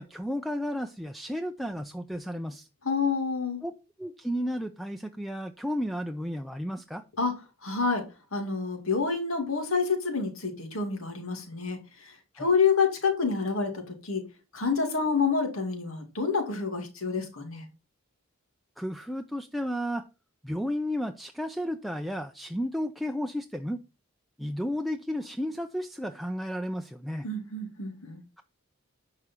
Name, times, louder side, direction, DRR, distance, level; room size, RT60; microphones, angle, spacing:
voice 1, 0.0-2.7 3.6-3.7 4.0-7.0 12.4-12.5 18.8-20.1 20.4-23.8 24.4-27.3 28.4-28.5, equal, ahead, 0.4 m, -33 dB
voice 2, 2.8-3.6 7.2-7.3 7.6-8.0 8.3-14.2 14.5-17.7 27.2-28.2, left 5 dB, 75° left, 2.4 m, -28 dB
10.5 x 4.9 x 4.5 m
head